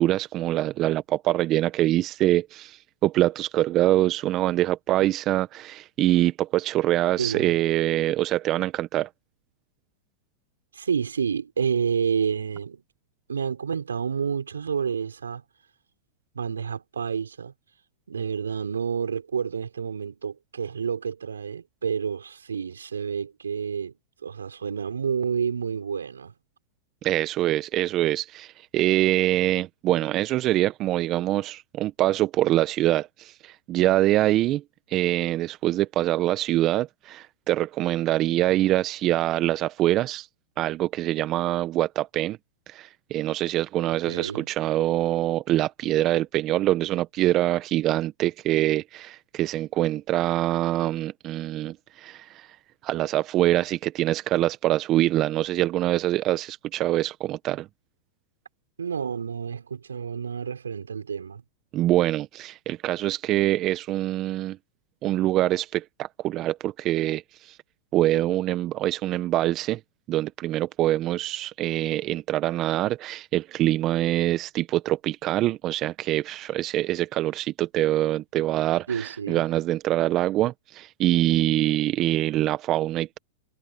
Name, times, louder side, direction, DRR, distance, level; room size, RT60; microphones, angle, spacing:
voice 1, 0.0-9.1 27.0-34.6 34.9-40.3 40.6-42.4 42.7-52.5 52.8-57.7 61.7-64.6 65.0-67.6 67.9-69.8 70.1-83.2, right 14 dB, 40° right, 1.0 m, -24 dB
voice 2, 7.2-7.6 10.7-12.8 13.3-15.4 16.3-17.5 18.1-23.9 24.2-26.3 44.0-44.5 58.8-61.4 78.9-79.4, right 6 dB, 90° right, 5.7 m, -29 dB
hypercardioid pair, 110°, 0 cm